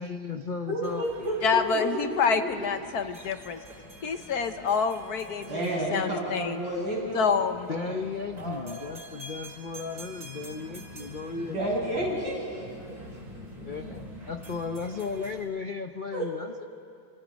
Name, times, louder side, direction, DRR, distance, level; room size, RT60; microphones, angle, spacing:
voice 1, 0.0-1.5 7.7-11.8 13.6-16.7, left 4 dB, 85° left, 7 dB, 0.4 m, -35 dB
voice 2, 0.7-2.5 4.6-4.7 5.5-7.3 7.7-8.0 8.4-8.8 11.4-12.9 16.1-16.2, right 1 dB, 80° right, -4 dB, 7.5 m, -31 dB
sound 1, 0.8-15.4, equal, 50° right, 4.2 m, -46 dB
voice 3, 1.4-3.6 4.0-5.6 5.9-6.7 7.1-7.7, left 5 dB, 60° left, 8 dB, 1.3 m, -27 dB
28.0 x 26.5 x 5.2 m, 2.4 s
omnidirectional pair, 2.0 m